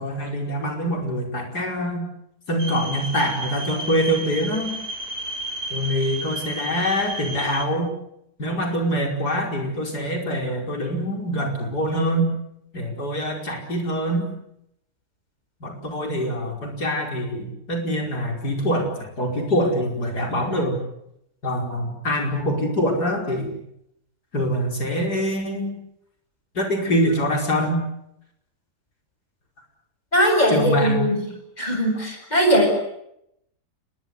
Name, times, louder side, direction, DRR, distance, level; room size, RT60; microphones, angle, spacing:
voice 1, 0.0-2.1 2.5-4.8 5.7-7.9 8.4-12.3 12.7-14.3 15.6-20.8 21.4-23.5 24.3-25.8 26.5-27.8 30.5-31.0 32.0-32.1, equal, 85° left, 2 dB, 5.7 m, -24 dB
sound 1, 2.6-7.6, right 1 dB, 75° right, 4.2 m, -32 dB
voice 2, 30.1-31.2 31.6-32.7, equal, 25° left, 4 dB, 7.9 m, -19 dB
29.5 x 22.5 x 8.1 m, 0.78 s
omnidirectional pair, 1.7 m